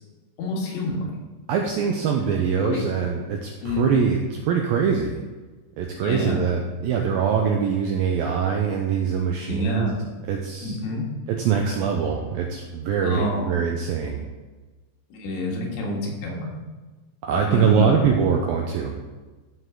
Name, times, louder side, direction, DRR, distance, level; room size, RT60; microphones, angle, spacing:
voice 1, 0.4-1.2 2.6-2.8 3.6-4.0 6.0-6.4 9.5-10.0 10.6-11.1 13.0-13.5 15.1-16.5 17.3-18.0 18.4-18.5, left 2 dB, 90° left, -2 dB, 4.1 m, -28 dB
voice 2, 1.5-5.2 5.8-9.9 10.3-10.8 11.4-14.2 17.2-19.0, right 6 dB, 85° right, 1 dB, 2.1 m, -23 dB
14.0 x 5.6 x 3.8 m, 1.2 s
omnidirectional pair, 5.0 m